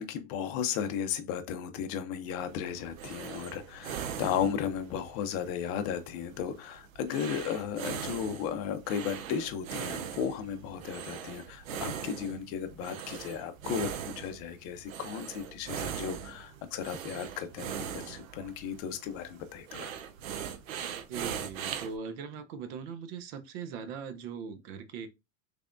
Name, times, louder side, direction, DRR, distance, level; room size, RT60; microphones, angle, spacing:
voice 1, 0.0-19.9, left 8 dB, 35° left, 0.6 m, -35 dB
sound 1, 2.4-22.0, right 8 dB, 85° right, 0.7 m, -41 dB
voice 2, 21.1-25.1, right 6 dB, 50° right, 0.7 m, -40 dB
3.4 x 3.3 x 2.5 m
supercardioid pair, 135°, 40 cm